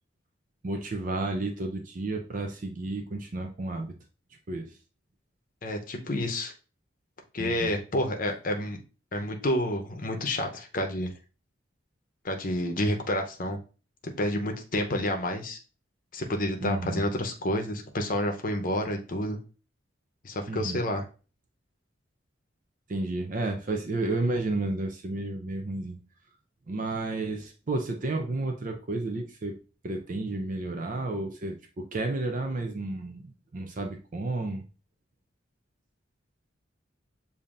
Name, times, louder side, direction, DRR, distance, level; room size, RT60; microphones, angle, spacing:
voice 1, 0.6-3.9 4.5-4.7 7.4-7.7 16.6-17.0 20.5-20.8 22.9-26.0 26.7-29.6 29.8-34.6, right 2 dB, 40° right, 4 dB, 0.5 m, -32 dB
voice 2, 5.6-6.5 7.3-8.8 9.1-11.1 12.2-13.6 14.0-15.6 16.1-19.4 20.2-21.0, left 1 dB, 45° left, 3 dB, 0.8 m, -29 dB
7.0 x 2.7 x 2.5 m, 0.34 s
head